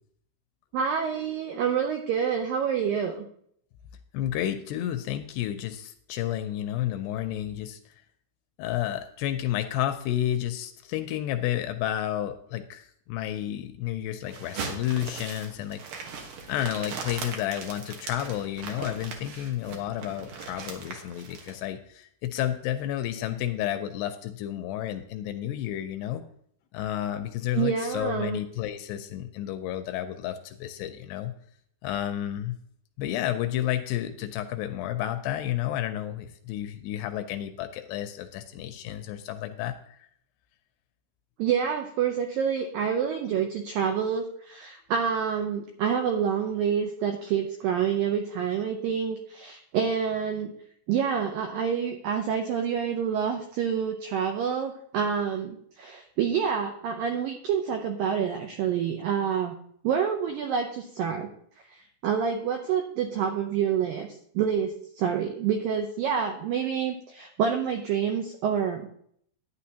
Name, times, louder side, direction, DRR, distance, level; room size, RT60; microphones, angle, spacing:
voice 1, 0.7-3.3 27.5-28.4 41.4-50.5 50.9-59.5 59.8-61.3 61.7-64.1 64.4-68.9, right 7 dB, 90° right, 4 dB, 2.0 m, -27 dB
voice 2, 4.1-8.0 8.6-15.8 16.5-26.2 26.7-31.3 31.8-32.6 33.0-40.1, left 12 dB, 85° left, 9 dB, 2.5 m, -31 dB
sound 1, 14.3-21.6, right 5 dB, 65° right, 2.3 m, -39 dB
11.5 x 9.6 x 2.8 m, 0.66 s
omnidirectional pair, 5.0 m